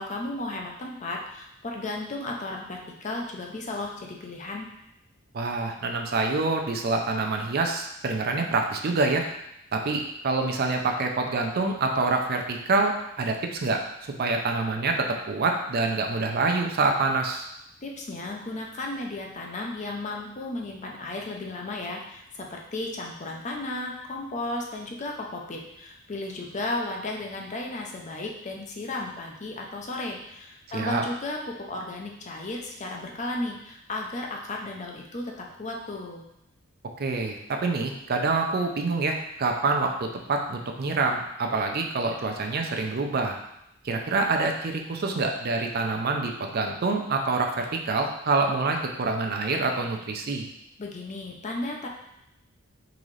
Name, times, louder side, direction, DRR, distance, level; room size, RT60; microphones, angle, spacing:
voice 1, 0.0-4.7 17.8-36.2 50.8-51.9, left 2 dB, 35° left, 0 dB, 0.6 m, -34 dB
voice 2, 5.3-9.2 9.7-17.5 30.7-31.0 37.0-43.4 43.8-50.5, right 3 dB, 50° right, 3 dB, 0.5 m, -26 dB
3.9 x 3.7 x 3.2 m, 0.82 s
head